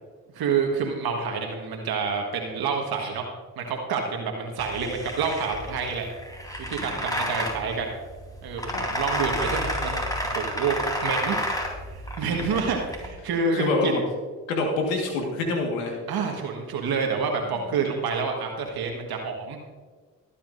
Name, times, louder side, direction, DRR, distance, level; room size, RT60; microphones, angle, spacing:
voice 1, 0.3-3.3 3.6-6.1 6.7-7.9 8.4-14.0 16.1-19.6, right 5 dB, 70° right, 2 dB, 1.6 m, -28 dB
sound 1, 4.6-13.1, equal, 10° left, 3.4 m, -31 dB
voice 2, 6.8-7.3 8.7-8.9 12.5-12.6 13.5-14.0 14.5-16.0, left 3 dB, 90° left, 2 dB, 1.7 m, -27 dB
22.5 x 8.7 x 2.6 m, 1.5 s
hypercardioid pair, 45°, 39 cm